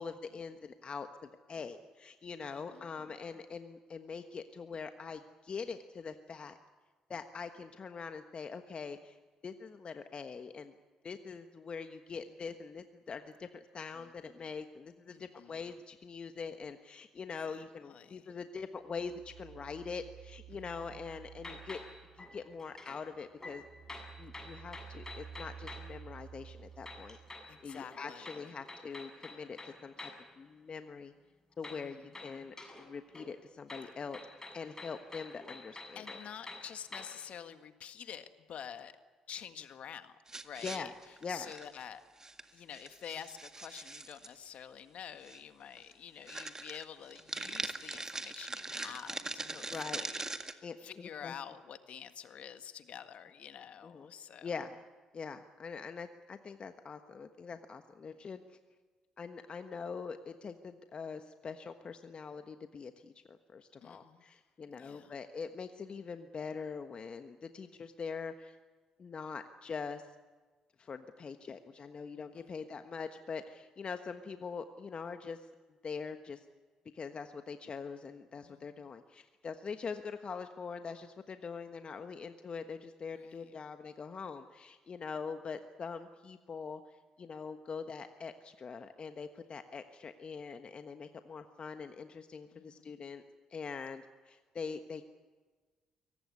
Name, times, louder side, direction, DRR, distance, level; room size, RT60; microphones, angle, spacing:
voice 1, 0.0-6.6 7.1-9.2 9.4-10.7 11.0-21.8 22.2-23.6 24.2-27.2 27.6-30.1 30.4-31.1 31.6-34.2 34.5-36.2 40.6-40.9 41.2-41.5 49.7-50.0 50.6-51.3 53.8-54.1 54.4-54.7 55.1-58.4 59.2-68.6 69.0-70.0 70.8-75.5 75.8-76.4 76.9-93.2 93.5-95.0, left 5 dB, 45° left, 8 dB, 1.3 m, -43 dB
voice 2, 2.4-2.9 13.9-14.1 15.1-15.6 17.9-18.3 20.5-21.1 27.5-28.4 31.7-32.2 35.9-38.9 39.3-40.9 41.3-42.0 42.5-54.5 63.8-64.2 64.8-65.1 72.3-72.6 78.4-78.9 83.1-83.5 92.5-93.0, left 8 dB, 60° left, 9 dB, 1.7 m, -48 dB
sound 1, 18.9-22.8 23.1-27.7, right 8 dB, 55° right, 1.5 m, -52 dB
sound 2, 21.4-23.0 23.4-26.0 26.8-30.3 31.6-32.9 33.1-37.3, left 2 dB, 20° left, 7.8 m, -49 dB
sound 3, 40.3-41.8 42.2-42.4 42.7-44.3 45.2-45.4 45.8-45.9 46.3-50.5, right 2 dB, 25° right, 1.8 m, -41 dB
23.0 x 18.5 x 9.7 m, 1.4 s
hypercardioid pair, 50°, 2 cm